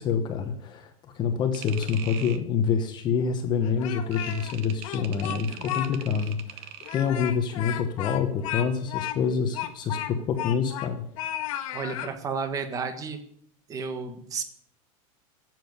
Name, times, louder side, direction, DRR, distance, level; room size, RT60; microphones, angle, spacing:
voice 1, 0.0-11.0, left 6 dB, 25° left, 6 dB, 1.1 m, -27 dB
sound 1, 1.5-2.4 4.1-7.1, right 9 dB, 35° right, 0.9 m, -42 dB
Speech, 3.6-4.5 4.8-5.9 6.2-6.3 6.8-10.9 11.2-12.1, left 11 dB, 75° left, 1.7 m, -34 dB
voice 2, 5.6-5.9 11.7-13.2 13.7-14.4, right 5 dB, 20° right, 8 dB, 1.3 m, -32 dB
11.5 x 7.8 x 9.6 m, 0.67 s
supercardioid pair, 170°, 17 cm